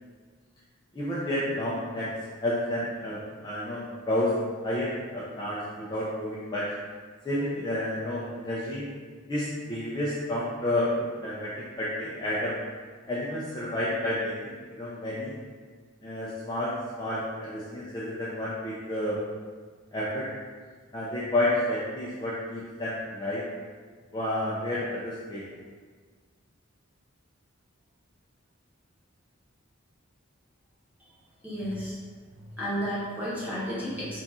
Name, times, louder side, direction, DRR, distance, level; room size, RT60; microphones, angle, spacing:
voice 1, 0.9-2.1 2.4-4.3 4.6-6.7 7.2-8.8 9.3-11.5 11.8-12.6 13.1-15.3 16.0-19.2 19.9-20.3 20.9-23.4 24.1-25.5, left 1 dB, 20° left, -8 dB, 0.4 m, -30 dB
voice 2, 31.4-32.0 32.6-34.2, equal, 5° right, -10 dB, 1.0 m, -32 dB
3.5 x 2.5 x 4.1 m, 1.5 s
head